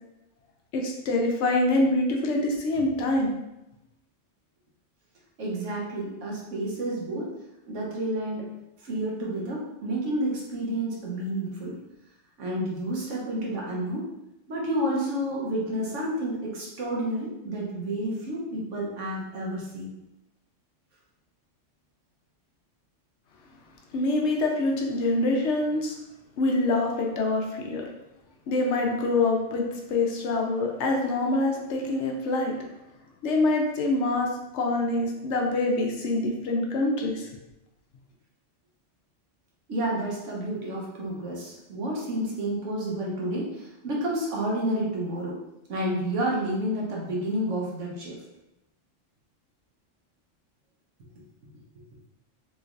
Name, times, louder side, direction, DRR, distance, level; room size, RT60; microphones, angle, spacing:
voice 1, 0.7-3.3 23.9-26.0 26.4-27.8 28.5-32.7 33.2-37.3, left 2 dB, 70° left, 0 dB, 0.8 m, -25 dB
voice 2, 5.4-7.3 7.7-8.5 8.8-11.7 12.4-14.1 14.5-19.9 39.7-45.4 45.7-48.2, right 1 dB, 75° right, -4 dB, 1.2 m, -30 dB
3.1 x 3.1 x 2.4 m, 0.91 s
omnidirectional pair, 1.3 m